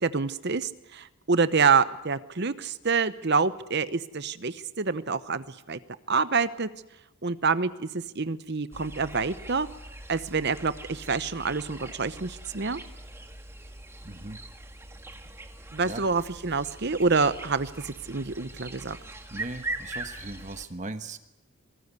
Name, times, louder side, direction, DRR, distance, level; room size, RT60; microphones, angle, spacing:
voice 1, 0.0-5.8 6.1-6.7 7.2-9.7 10.1-12.8 15.7-19.0, right 4 dB, 50° right, 14 dB, 0.9 m, -27 dB
sound 1, 8.7-20.7, right 2 dB, 10° right, 1.6 m, -41 dB
voice 2, 14.0-14.4 15.8-16.0 19.3-21.2, right 2 dB, 35° right, 10 dB, 1.2 m, -38 dB
26.5 x 19.0 x 8.3 m, 0.89 s
head